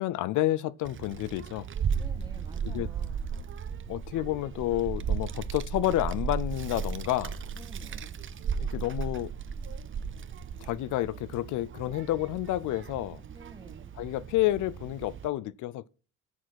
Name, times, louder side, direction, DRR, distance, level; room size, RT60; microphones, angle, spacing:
voice 1, 0.0-1.7 2.6-2.9 3.9-7.4 8.6-9.3 10.6-13.2 14.0-15.9, left 15 dB, 80° left, 0.5 m, -30 dB
Child speech kid speaking, 0.8-15.3, right 6 dB, 40° right, 0.7 m, -35 dB
voice 2, 1.9-3.3 7.5-8.2 13.3-13.9, right 2 dB, 15° right, 1.8 m, -51 dB
7.3 x 6.0 x 6.3 m
cardioid pair, 90°, 30 cm